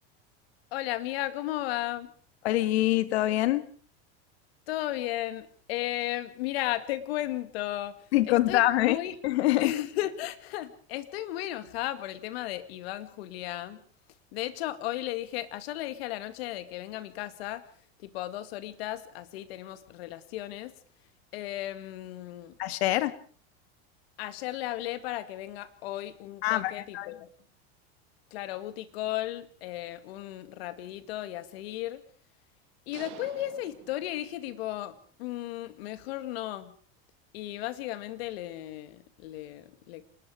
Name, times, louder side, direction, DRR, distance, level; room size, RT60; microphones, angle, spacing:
voice 1, 0.7-2.1 4.7-8.0 8.3-9.2 9.6-13.8 14.3-17.6 18.0-20.7 21.3-22.6 24.2-27.3 28.3-32.0 32.9-36.7 37.3-40.0, left 14 dB, 75° left, 12 dB, 2.2 m, -35 dB
voice 2, 2.4-3.6 8.1-9.0 9.2-9.7 22.6-23.1 26.4-27.1, left 16 dB, 90° left, 14 dB, 1.7 m, -25 dB
sound 1, 32.9-34.8, right 14 dB, 40° right, 1.8 m, -49 dB
27.0 x 20.5 x 4.9 m, 0.44 s
supercardioid pair, 165°, 31 cm